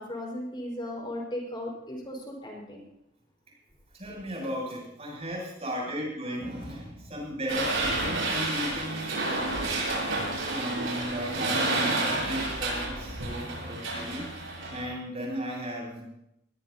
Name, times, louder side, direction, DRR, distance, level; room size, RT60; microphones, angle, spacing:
voice 1, 0.0-2.8, left 1 dB, 25° left, -1 dB, 4.8 m, -36 dB
voice 2, 3.9-9.1 10.4-16.0, equal, 30° right, -2 dB, 8.0 m, -35 dB
sound 1, 7.5-14.8, right 2 dB, 75° right, 8.0 m, -30 dB
21.0 x 20.5 x 2.8 m, 0.84 s
head